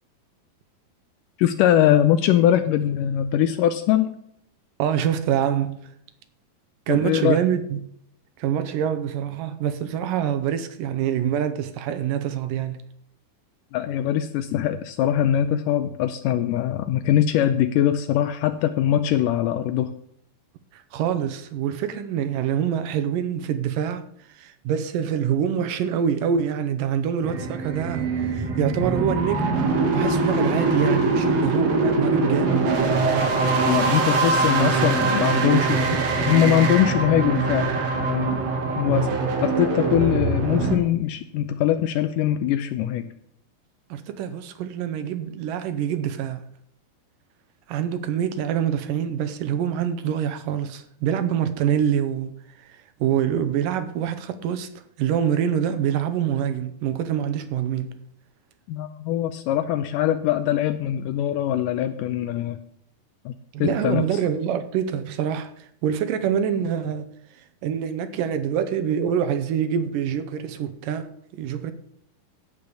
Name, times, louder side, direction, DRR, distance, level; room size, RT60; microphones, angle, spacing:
voice 1, 1.4-4.1 6.9-7.4 13.7-20.0 33.6-38.4 38.8-39.1 39.4-43.1 58.7-62.6 63.3-63.4 63.6-64.0, left 11 dB, 80° left, 2.0 m, -22 dB
voice 2, 4.8-5.8 6.9-7.8 8.4-12.8 20.7-32.8 43.9-46.4 47.7-52.3 52.6-54.7 55.0-58.0 63.5-71.7, right 9 dB, 75° right, 2.3 m, -25 dB
sound 1, 27.2-40.8, right 3 dB, 50° right, 2.6 m, -23 dB
15.0 x 5.3 x 6.8 m
omnidirectional pair, 4.2 m